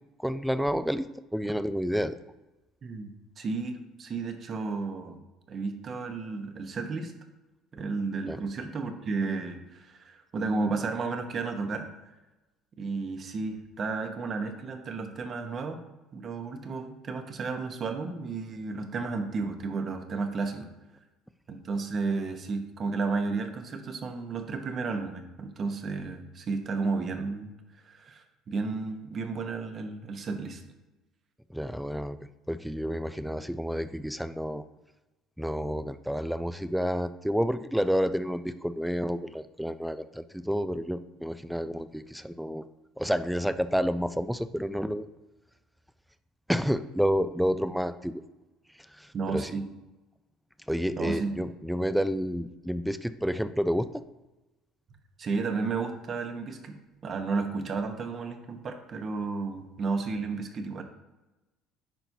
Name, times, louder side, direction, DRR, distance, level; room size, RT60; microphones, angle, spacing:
voice 1, 0.2-2.2 8.3-8.4 31.5-34.6 35.4-42.6 43.0-45.1 46.5-48.1 49.0-49.6 50.7-54.0, equal, ahead, 13 dB, 0.4 m, -30 dB
voice 2, 3.4-5.2 5.5-7.1 7.7-11.9 12.8-15.8 16.1-20.7 21.5-27.5 27.8-30.6 49.1-49.6 51.0-51.3 55.2-56.8 57.0-60.8, right 4 dB, 45° right, 6 dB, 1.0 m, -32 dB
10.0 x 4.4 x 2.7 m, 1.0 s
hypercardioid pair, 70°, 0 cm